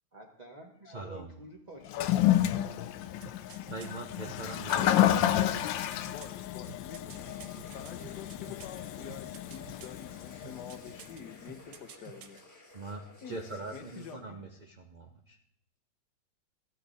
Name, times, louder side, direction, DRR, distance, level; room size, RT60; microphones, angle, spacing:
voice 1, 0.1-2.9, right 1 dB, 25° right, -2 dB, 1.3 m, -50 dB
voice 2, 0.9-1.3 3.7-5.8 12.7-15.4, right 3 dB, 45° right, 3 dB, 0.5 m, -43 dB
Toilet flush, 1.9-11.1, left 12 dB, 80° left, 1.3 m, -30 dB
sound 1, 3.2-5.1 5.6-8.8 9.1-10.0 10.4-11.2 11.5-12.4 12.7-12.8, right 10 dB, 75° right, 1.5 m, -50 dB
voice 3, 6.1-7.3 7.7-12.4 13.2-13.4 13.7-14.5, left 8 dB, 65° left, 9 dB, 1.4 m, -47 dB
sound 2, 7.1-14.2, left 2 dB, 10° left, 1.1 m, -55 dB
14.0 x 9.7 x 4.1 m, 0.70 s
omnidirectional pair, 2.0 m